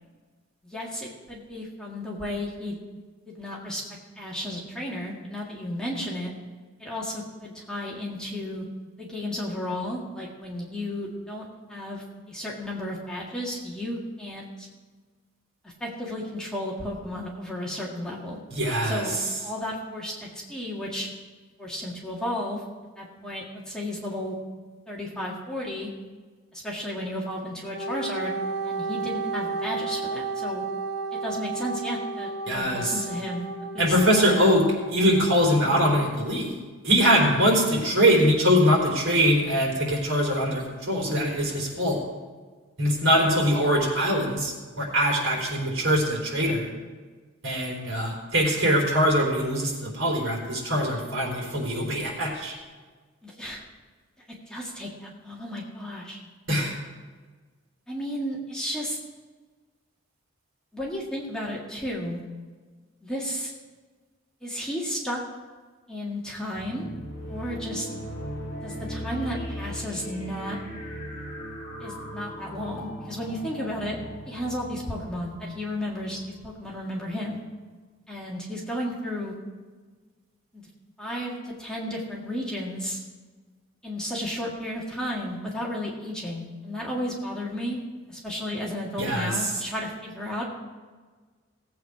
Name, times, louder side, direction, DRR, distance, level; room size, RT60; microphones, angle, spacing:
voice 1, 0.6-2.8 3.3-3.8 4.2-6.3 6.8-8.7 9.0-14.7 15.6-18.4 18.8-19.2 19.4-21.1 21.6-22.6 23.0-24.4 24.9-25.9 26.5-30.6 31.2-34.0 53.2-53.6 54.5-56.2 57.9-59.0 60.7-62.2 63.0-63.5 64.4-65.2 65.9-66.9 67.3-67.9 68.6-70.6 71.8-77.4 78.1-79.3 80.5-80.6 81.0-83.0 83.8-87.8 88.1-90.5, left 1 dB, 5° left, -4 dB, 1.8 m, -33 dB
voice 2, 18.5-19.0 32.5-32.8 33.8-34.6 34.9-36.5 36.8-42.0 42.8-46.7 47.4-52.5 56.5-56.7 89.0-89.3, equal, 70° right, -1 dB, 3.9 m, -22 dB
Wind instrument woodwind instrument, 27.7-35.5, right 3 dB, 50° left, 1.2 m, -33 dB
sound 1, 66.5-76.7, equal, 35° left, 3.9 m, -38 dB
17.5 x 8.3 x 4.8 m, 1.4 s
head